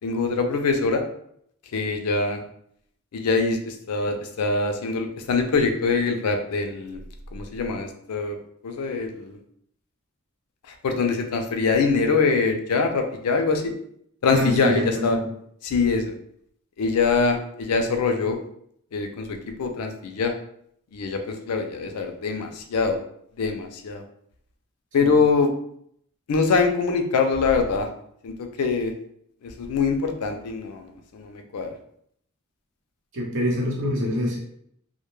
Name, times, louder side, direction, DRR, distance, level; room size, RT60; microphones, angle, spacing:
voice 1, 0.0-1.0 1.7-2.4 3.1-7.0 7.3-8.4 8.6-9.4 10.8-13.7 14.2-15.2 15.6-16.1 16.8-18.4 18.9-20.3 20.9-23.0 23.4-24.0 24.9-25.5 26.3-27.9 28.2-28.9 29.4-31.7, left 4 dB, 90° left, 5 dB, 0.4 m, -23 dB
voice 2, 14.3-15.2 25.0-25.1 33.1-34.4, left 1 dB, 60° right, -4 dB, 0.9 m, -25 dB
2.1 x 2.1 x 3.0 m, 0.69 s
head